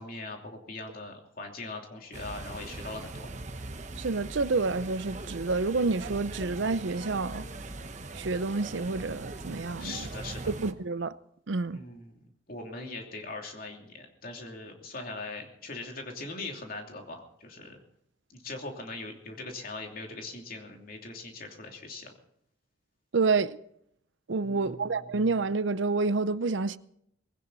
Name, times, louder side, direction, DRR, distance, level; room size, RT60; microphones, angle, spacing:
voice 1, 0.0-3.3 9.8-10.4 11.7-17.8 18.3-22.1 24.4-25.0, left 2 dB, 50° left, 2.9 m, -41 dB
sound 1, 2.1-10.7, right 2 dB, 40° right, 1.0 m, -41 dB
voice 2, 4.0-7.5 8.1-10.0 10.6-11.1 11.5-11.8 23.1-23.6 24.3-26.8, right 3 dB, 70° right, 0.6 m, -28 dB
19.5 x 17.0 x 4.1 m
head